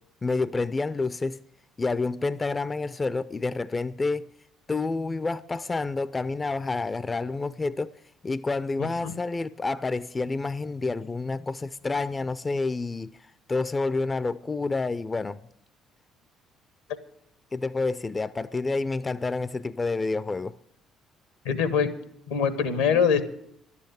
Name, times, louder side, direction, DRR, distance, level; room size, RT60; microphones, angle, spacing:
voice 1, 0.2-1.4 1.8-4.3 4.7-7.9 8.2-15.4 17.5-20.6, left 3 dB, 25° left, 0.4 m, -29 dB
voice 2, 8.8-9.1 21.4-21.9 22.3-23.2, left 7 dB, 80° left, 1.0 m, -23 dB
11.5 x 8.4 x 9.0 m
hypercardioid pair, 50°, 0 cm